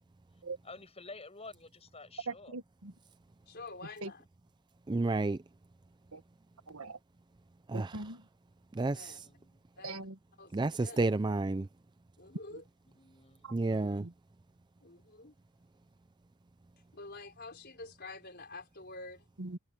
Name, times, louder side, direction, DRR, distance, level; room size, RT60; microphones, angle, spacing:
voice 1, 0.6-2.5 9.2-9.6 12.9-14.0, left 3 dB, 25° left, 7.4 m, -51 dB
voice 2, 2.3-2.9 4.0-4.1 6.1-6.2 6.7-7.0 7.7-8.3 9.8-10.2 12.5-12.6 13.4-13.6 14.0-14.1 19.4-19.6, right 3 dB, 75° right, 1.4 m, -41 dB
voice 3, 3.5-4.2 8.9-9.2 9.8-10.0 10.4-11.0 12.2-12.6 14.8-15.3 16.9-19.2, left 3 dB, 45° left, 4.8 m, -48 dB
voice 4, 4.9-5.4 7.7-7.9 8.8-9.2 10.5-11.7 13.5-14.0, right 2 dB, 20° right, 0.4 m, -30 dB
head